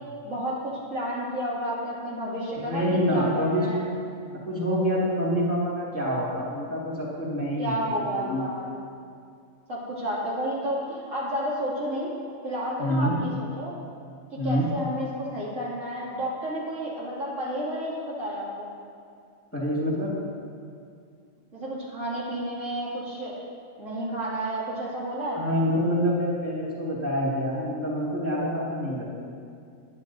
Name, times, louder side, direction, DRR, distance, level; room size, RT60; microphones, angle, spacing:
voice 1, 0.2-3.8 7.6-8.7 9.7-12.1 12.4-13.7 14.3-18.7 21.5-23.4 23.8-25.4, equal, 70° right, -7 dB, 2.9 m, -31 dB
voice 2, 2.6-3.9 4.5-8.4 12.8-13.2 14.4-14.7 19.5-20.1 25.4-29.1, equal, 10° left, -6 dB, 2.0 m, -26 dB
19.0 x 9.9 x 2.7 m, 2.3 s
omnidirectional pair, 1.4 m